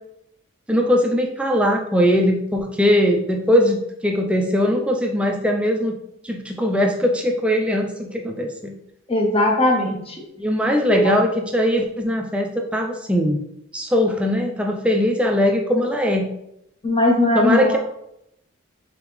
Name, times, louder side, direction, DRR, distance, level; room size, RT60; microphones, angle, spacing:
voice 1, 0.7-5.9 6.2-8.7 10.4-13.4 13.7-16.3 17.3-17.8, equal, 5° right, 2 dB, 0.3 m, -20 dB
voice 2, 9.1-10.2 10.9-11.1 16.8-17.8, left 1 dB, 25° left, 1 dB, 0.7 m, -19 dB
3.8 x 3.6 x 3.1 m, 0.81 s
head